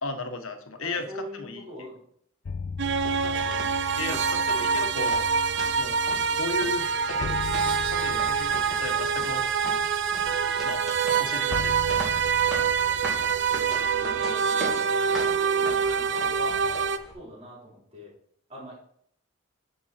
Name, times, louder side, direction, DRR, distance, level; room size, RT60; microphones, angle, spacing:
voice 1, 0.0-1.9 3.5-3.6 4.0-5.3 5.8-6.0 6.3-7.3 7.9-9.5 10.6-10.8 11.2-12.4, left 3 dB, 80° left, 7 dB, 1.3 m, -35 dB
voice 2, 0.8-2.0 3.2-3.7 13.5-16.6 17.1-18.1 18.5-18.8, equal, 30° right, -5 dB, 4.3 m, -43 dB
sound 1, 2.4-14.1, left 5 dB, 45° left, 0.4 m, -40 dB
sound 2, 2.8-17.0, right 6 dB, 55° right, 0.6 m, -25 dB
sound 3, 3.0-17.1, equal, ahead, 2.7 m, -41 dB
11.5 x 5.3 x 4.3 m, 0.65 s
head